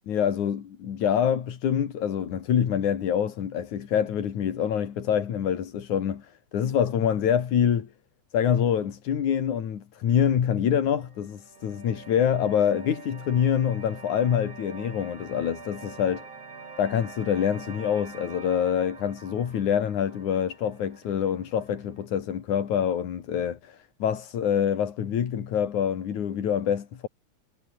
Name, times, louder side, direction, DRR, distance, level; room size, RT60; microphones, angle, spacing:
voice 1, 0.1-7.9 8.3-16.2 16.8-27.1, left 8 dB, 80° left, 3.7 m, -26 dB
sound 1, 11.0-22.0, right 4 dB, 55° right, 5.6 m, -46 dB
omnidirectional pair, 3.4 m